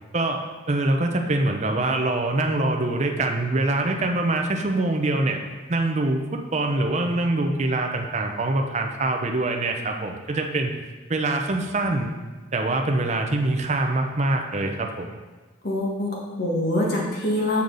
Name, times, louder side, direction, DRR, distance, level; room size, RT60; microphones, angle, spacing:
voice 1, 0.1-5.4 5.7-10.7 11.1-12.1 12.5-15.2, right 2 dB, 35° right, 3 dB, 0.6 m, -24 dB
voice 2, 15.6-17.6, left 1 dB, 50° left, -3 dB, 1.6 m, -24 dB
7.0 x 6.3 x 3.9 m, 1.3 s
head